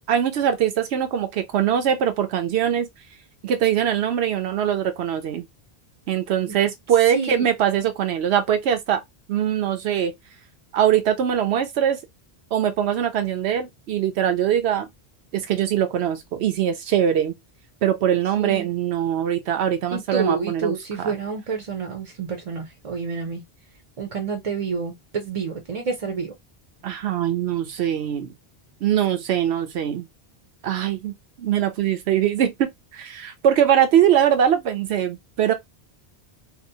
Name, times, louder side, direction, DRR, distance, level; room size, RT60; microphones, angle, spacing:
voice 1, 0.1-2.9 3.4-5.5 6.1-9.0 9.3-10.1 10.7-12.0 12.5-14.9 15.3-17.3 17.8-21.2 26.8-28.3 28.8-30.1 30.6-35.5, right 9 dB, 85° right, 0.9 m, -22 dB
voice 2, 18.4-18.7 19.9-23.4 24.0-26.3, right 5 dB, 45° right, 0.6 m, -28 dB
2.7 x 2.0 x 2.6 m
omnidirectional pair, 1.1 m